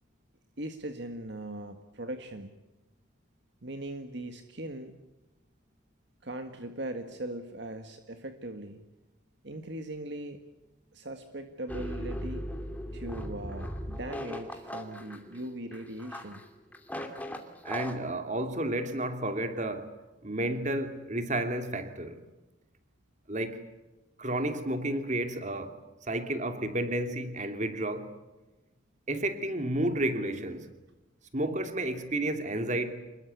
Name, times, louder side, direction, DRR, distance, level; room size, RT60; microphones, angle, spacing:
voice 1, 0.6-2.6 3.6-4.9 6.2-8.8 9.4-10.4 10.9-12.4 12.9-16.4, right 1 dB, 55° right, 7 dB, 1.8 m, -39 dB
sound 1, 11.7-18.0, equal, 5° left, 2.7 m, -38 dB
voice 2, 17.6-19.9 20.2-22.2 23.3-23.6 24.2-25.7 26.0-28.1 29.1-30.7 31.3-32.9, right 1 dB, 35° right, 7 dB, 2.9 m, -31 dB
27.5 x 21.5 x 8.3 m, 1.1 s
head